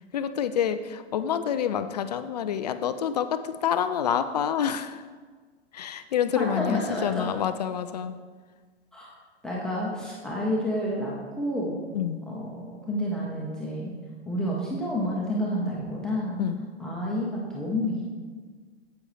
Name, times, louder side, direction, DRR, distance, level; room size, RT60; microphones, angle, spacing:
voice 1, 0.1-5.0 5.7-8.2 11.9-12.2 16.4-16.6, left 9 dB, 40° left, 11 dB, 0.4 m, -27 dB
voice 2, 6.3-7.3 8.9-9.1 9.4-11.8 12.3-13.9 14.3-16.4 16.8-18.0, left 1 dB, ahead, -5 dB, 1.1 m, -29 dB
9.6 x 8.1 x 3.3 m, 1.5 s
figure-of-eight pair, 105°, 33 cm